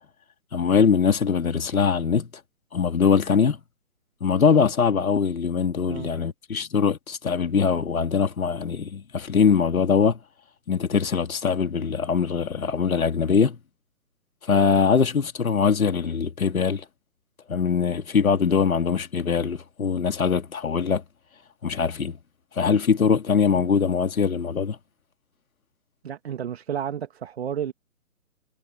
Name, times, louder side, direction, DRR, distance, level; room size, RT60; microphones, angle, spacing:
voice 1, 0.5-2.3 2.7-3.6 4.2-10.2 10.7-13.6 14.5-16.8 17.5-21.0 21.6-22.2 22.6-24.8, left 6 dB, 70° left, 2.7 m, -22 dB
voice 2, 26.0-27.7, right 9 dB, 45° right, 2.2 m, -31 dB
figure-of-eight pair, 150°, 44 cm